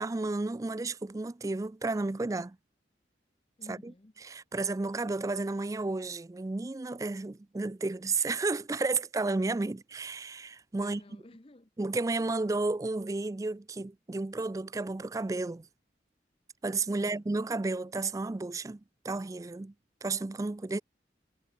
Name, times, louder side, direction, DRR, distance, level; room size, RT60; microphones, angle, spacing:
voice 1, 0.0-2.6 3.7-3.9 4.2-11.0 11.8-15.7 16.6-19.7 20.0-20.8, right 3 dB, 20° right, 0.3 m, -32 dB
voice 2, 3.6-4.1 10.8-11.7 16.9-17.3, left 1 dB, 30° left, 0.9 m, -53 dB
head